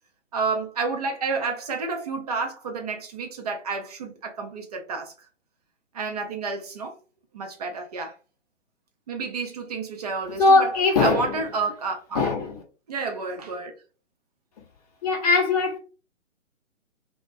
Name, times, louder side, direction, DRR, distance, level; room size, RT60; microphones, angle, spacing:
voice 1, 0.3-5.1 5.9-6.9 7.3-8.1 9.1-10.7 11.0-12.2 12.9-13.7, right 4 dB, 30° right, 0.5 m, -30 dB
voice 2, 10.4-11.4 12.1-12.6 15.0-15.8, left 3 dB, 30° left, 0.8 m, -20 dB
2.4 x 2.1 x 2.4 m
figure-of-eight pair, 135°, 38 cm